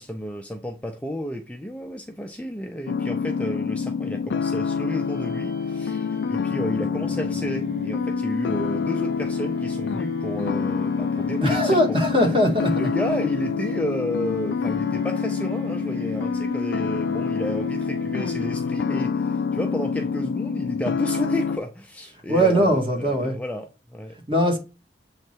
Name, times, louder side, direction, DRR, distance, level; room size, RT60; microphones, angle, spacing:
voice 1, 0.0-12.0 12.7-24.2, equal, 10° left, 0.5 m, -32 dB
sound 1, 2.9-21.6, left 5 dB, 75° left, 0.3 m, -27 dB
sound 2, 5.0-18.9, left 2 dB, 65° right, 0.7 m, -39 dB
voice 2, 11.4-12.8 22.3-23.4 24.3-24.6, equal, 30° right, 2.1 m, -20 dB
7.8 x 3.2 x 4.5 m
head